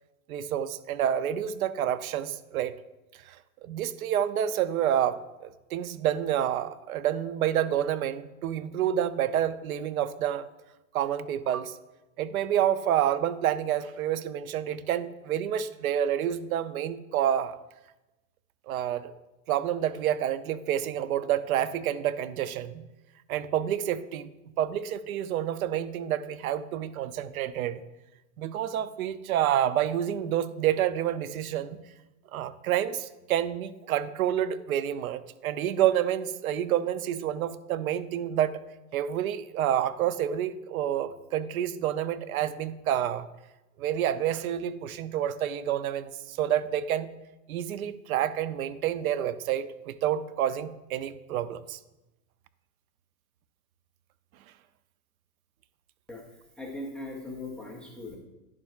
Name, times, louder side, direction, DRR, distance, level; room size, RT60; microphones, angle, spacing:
voice 1, 0.3-2.7 3.3-3.4 3.6-10.4 10.9-11.8 12.2-17.6 18.7-19.1 19.5-22.8 23.3-27.8 28.4-31.8 32.3-38.6 38.9-43.3 43.8-47.1 47.5-51.8, right 10 dB, 80° right, 14 dB, 0.7 m, -28 dB
voice 2, 56.6-58.2, left 2 dB, ahead, -2 dB, 0.3 m, -39 dB
10.5 x 7.2 x 2.4 m, 1.0 s
supercardioid pair, 140°, 42 cm